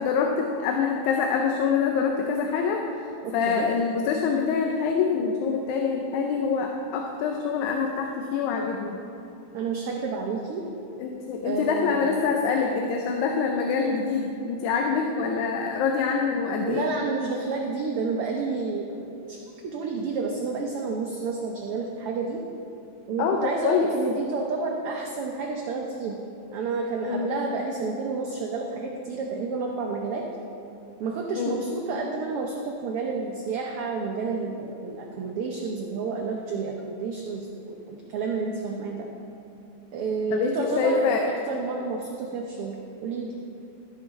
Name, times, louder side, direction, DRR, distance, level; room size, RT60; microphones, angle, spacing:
voice 1, 0.0-3.1 3.3-9.0 11.0-16.9 23.2-23.9 27.1-27.3 31.4-31.6 40.3-41.3, left 5 dB, 85° left, 2 dB, 2.0 m, -25 dB
voice 2, 3.2-3.7 9.5-10.7 11.4-12.2 16.6-22.4 23.1-26.2 26.5-30.3 31.0-39.1 39.9-41.1 41.5-43.3, right 4 dB, 85° right, 1 dB, 1.2 m, -30 dB
14.0 x 5.8 x 4.0 m, 2.8 s
omnidirectional pair, 3.4 m